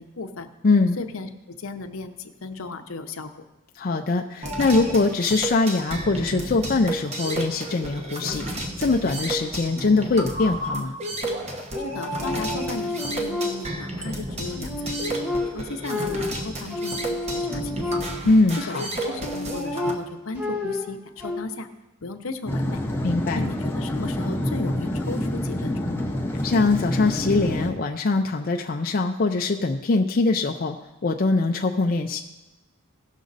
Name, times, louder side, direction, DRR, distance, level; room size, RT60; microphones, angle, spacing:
voice 1, 0.0-0.5 1.0-3.4 11.8-18.0 18.6-21.7 22.0-22.8 23.3-26.1, left 3 dB, 70° left, 8 dB, 0.8 m, -35 dB
voice 2, 0.6-1.0 3.8-11.0 18.2-18.8 23.0-23.4 26.4-30.8 31.0-32.2, left 3 dB, 40° left, 3 dB, 0.5 m, -22 dB
sound 1, 4.4-19.9, right 1 dB, 30° right, 1.0 m, -32 dB
sound 2, 11.7-14.0 14.4-18.4 18.9-21.4, left 2 dB, 5° right, 1.3 m, -31 dB
sound 3, 22.5-27.7, left 1 dB, 10° left, 0.8 m, -27 dB
16.5 x 6.3 x 4.0 m, 1.0 s
head